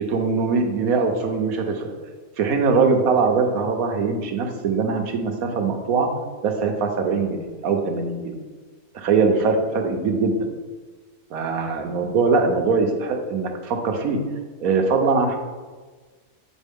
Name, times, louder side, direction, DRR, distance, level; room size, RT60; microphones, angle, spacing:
voice 1, 0.1-1.9 2.4-6.1 6.4-8.4 8.9-10.4 11.3-14.2 14.6-15.4, right 4 dB, 85° right, 4 dB, 1.3 m, -22 dB
8.3 x 4.7 x 3.5 m, 1.4 s
omnidirectional pair, 1.5 m